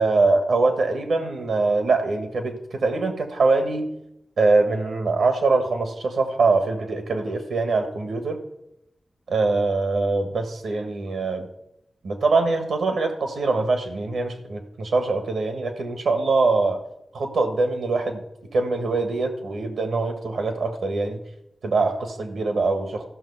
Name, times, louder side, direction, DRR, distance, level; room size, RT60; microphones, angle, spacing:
voice 1, 0.0-3.9 4.4-8.4 9.3-11.5 12.0-16.8 17.1-18.2 18.5-21.2 21.6-23.0, right 3 dB, 85° right, 7 dB, 1.3 m, -23 dB
14.0 x 6.1 x 5.5 m, 0.84 s
cardioid pair, 40°, 0 cm